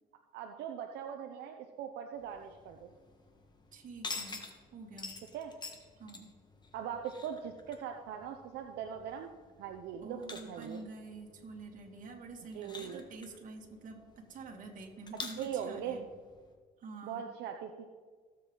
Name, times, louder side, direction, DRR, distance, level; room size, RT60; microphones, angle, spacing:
voice 1, 0.3-2.9 5.3-5.5 6.7-9.3 9.6-10.8 12.5-13.0 15.4-16.0 17.0-17.9, right 8 dB, 85° right, 4 dB, 0.8 m, -40 dB
sound 1, 2.2-16.5, left 3 dB, 25° left, 1.6 m, -49 dB
voice 2, 3.7-4.4 4.7-5.2 6.0-6.3 10.0-16.0 16.8-17.3, right 3 dB, 50° right, 1 dB, 2.4 m, -47 dB
17.5 x 7.8 x 4.0 m, 1.5 s
cardioid pair, 110°, 17 cm